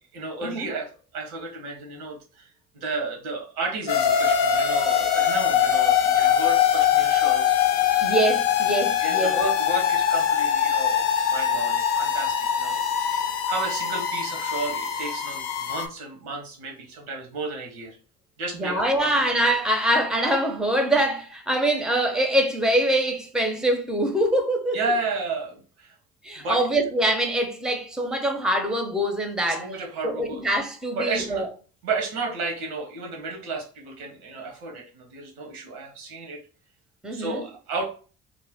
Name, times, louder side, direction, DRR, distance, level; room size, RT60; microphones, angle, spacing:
voice 1, 0.1-7.6 9.0-12.8 13.1-18.0 18.4-19.2 24.7-25.9 26.4-26.6 29.5-30.4 31.0-31.4 31.8-36.4 37.1-37.9, right 3 dB, 85° right, 0.9 m, -33 dB
sound 1, 3.9-15.9, left 8 dB, 70° left, 0.5 m, -22 dB
voice 2, 8.0-9.4 18.6-24.8 26.2-29.7 30.0-31.5 37.0-37.4, right 1 dB, ahead, 0.5 m, -24 dB
2.4 x 2.1 x 3.4 m
hypercardioid pair, 55°, 42 cm